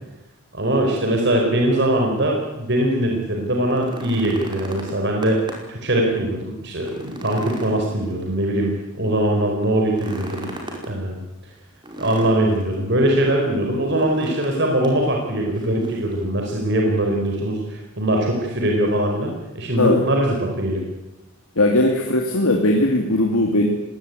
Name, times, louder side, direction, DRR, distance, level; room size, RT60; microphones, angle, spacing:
voice 1, 0.5-5.4 5.7-10.5 10.9-11.2 12.0-20.8, right 1 dB, 55° right, 1 dB, 4.6 m, -21 dB
sound 1, 3.5-5.8 6.2-6.3 6.7-8.6 9.8-10.9 11.8-12.7 13.9-14.6 14.8-15.0 15.5-16.1 17.3-17.4, right 1 dB, 20° right, 5.0 m, -36 dB
voice 2, 21.6-23.7, left 1 dB, 80° left, 1 dB, 2.8 m, -18 dB
20.0 x 19.0 x 9.4 m, 0.96 s
head